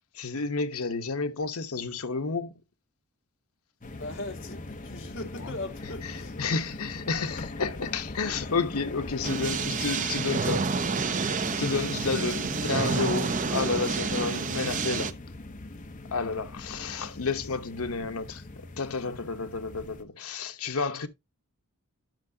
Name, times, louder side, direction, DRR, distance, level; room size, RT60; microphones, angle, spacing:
voice 1, 0.1-2.5 6.0-6.1 6.4-10.7 11.6-15.1 16.1-21.1, left 4 dB, 80° left, 1.0 m, -31 dB
sound 1, 3.8-20.0, left 2 dB, 35° left, 0.8 m, -41 dB
voice 2, 3.9-6.4 12.0-12.1, left 2 dB, 60° left, 2.0 m, -39 dB
sound 2, 9.2-15.1, right 4 dB, 35° right, 0.6 m, -29 dB
10.5 x 6.5 x 2.7 m
head